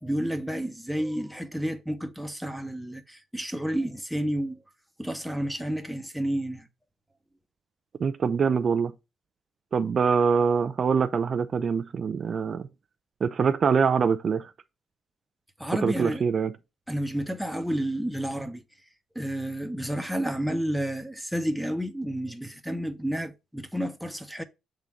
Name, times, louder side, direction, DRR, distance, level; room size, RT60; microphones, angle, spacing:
voice 1, 0.0-4.6 5.0-6.7 15.6-16.2 16.9-18.6 19.1-24.4, equal, ahead, 0.9 m, -30 dB
voice 2, 8.0-8.9 9.7-12.7 13.2-14.5 15.8-16.5, right 6 dB, 45° right, 0.5 m, -24 dB
7.2 x 3.8 x 4.6 m
cardioid pair, 90°, 0 cm